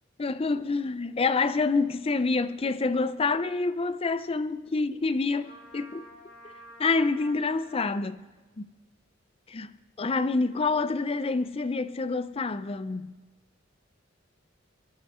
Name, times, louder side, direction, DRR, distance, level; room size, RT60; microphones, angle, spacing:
voice 1, 0.2-6.0 6.8-8.2 8.6-8.7 9.5-9.7 10.0-13.1, left 3 dB, 30° left, 0.5 m, -27 dB
Trumpet, 5.4-7.9, right 1 dB, 65° left, 5.4 m, -49 dB
27.0 x 9.6 x 4.3 m
head